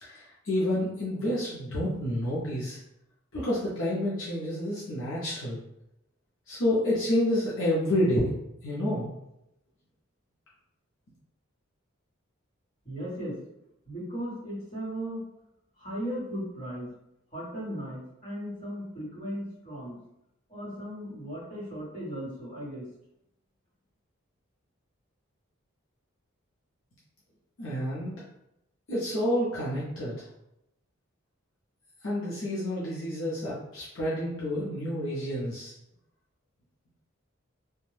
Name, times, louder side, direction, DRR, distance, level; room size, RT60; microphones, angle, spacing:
voice 1, 0.0-2.8 3.3-5.6 6.5-8.3 8.6-9.1 27.6-28.1 28.9-30.2 32.0-35.7, left 1 dB, 65° left, -7 dB, 0.7 m, -29 dB
voice 2, 12.8-13.4 13.9-15.2 15.8-16.9 17.3-20.0 20.5-22.9, equal, 35° left, -8 dB, 1.3 m, -36 dB
2.5 x 2.2 x 3.2 m, 0.84 s
head